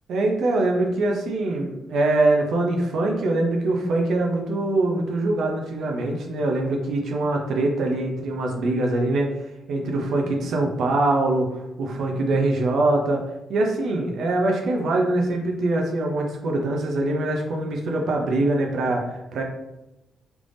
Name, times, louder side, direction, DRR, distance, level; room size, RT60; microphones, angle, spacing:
voice 1, 0.1-9.3 9.7-11.5 11.8-13.2 13.5-19.4, right 2 dB, 75° right, 1 dB, 0.6 m, -23 dB
3.3 x 3.3 x 2.6 m, 0.92 s
cardioid pair, 115°, 0 cm